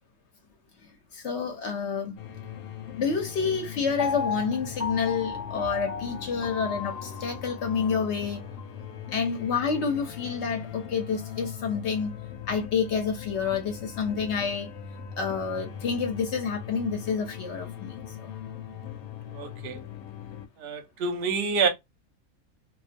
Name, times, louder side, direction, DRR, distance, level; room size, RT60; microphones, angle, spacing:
voice 1, 0.8-2.2 3.0-8.4 9.1-12.2 12.5-14.7 15.2-18.3, left 6 dB, 60° left, 0.8 m, -29 dB
sound 1, 2.2-20.5, left 8 dB, 90° left, 1.1 m, -40 dB
Piano, 4.0-8.1 8.6-8.7, left 5 dB, 10° right, 0.3 m, -34 dB
voice 2, 19.3-19.8 20.6-21.7, right 5 dB, 55° right, 0.7 m, -27 dB
2.3 x 2.2 x 2.4 m
omnidirectional pair, 1.5 m